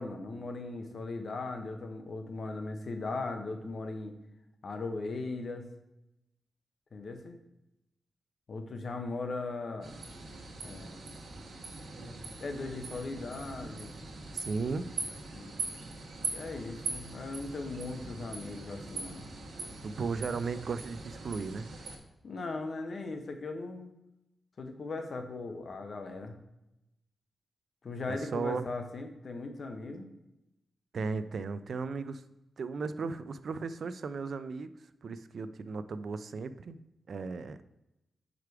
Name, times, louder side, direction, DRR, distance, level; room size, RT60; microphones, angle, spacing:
voice 1, 0.0-4.1 4.6-5.7 6.9-7.4 8.5-10.0 10.6-11.0 12.4-14.0 15.3-15.5 16.3-19.3 22.2-23.9 24.6-26.4 27.8-30.1, left 3 dB, 50° left, 6 dB, 0.7 m, -38 dB
sound 1, 9.8-22.0, right 3 dB, 85° right, 1.1 m, -42 dB
voice 2, 14.3-15.0 19.8-21.7 28.1-28.7 30.9-32.2 32.6-34.7 35.0-36.8 37.1-37.6, right 4 dB, 60° right, 12 dB, 0.3 m, -36 dB
4.9 x 4.7 x 4.7 m, 0.91 s
wide cardioid pair, 135°, 0 cm